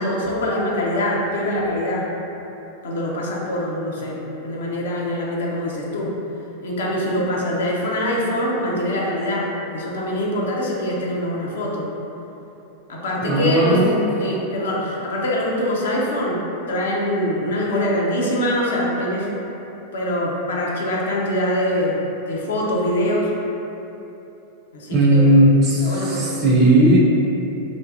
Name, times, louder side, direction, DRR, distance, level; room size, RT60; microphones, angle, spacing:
voice 1, 0.0-2.1 2.8-6.1 6.6-11.8 12.9-13.9 14.2-16.4 16.7-19.3 19.9-22.0 22.3-23.3 24.7-25.4 25.8-26.3, left 1 dB, 60° left, -3 dB, 0.5 m, -23 dB
voice 2, 13.2-14.1 24.9-27.0, right 1 dB, 35° right, -4 dB, 0.4 m, -16 dB
3.5 x 2.5 x 2.4 m, 3.0 s
figure-of-eight pair, 90°, 0 cm